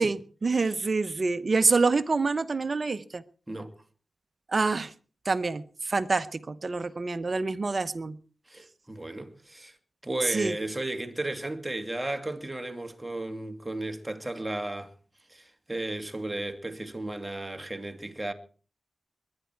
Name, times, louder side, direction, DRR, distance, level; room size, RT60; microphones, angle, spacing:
voice 1, 0.0-3.2 4.5-4.9 5.2-8.2 10.3-10.5, right 3 dB, 50° right, 0.8 m, -26 dB
voice 2, 8.5-9.7 10.0-14.9 15.3-18.3, right 2 dB, 20° right, 2.4 m, -34 dB
22.5 x 10.5 x 4.6 m
cardioid pair, 40°, 0 cm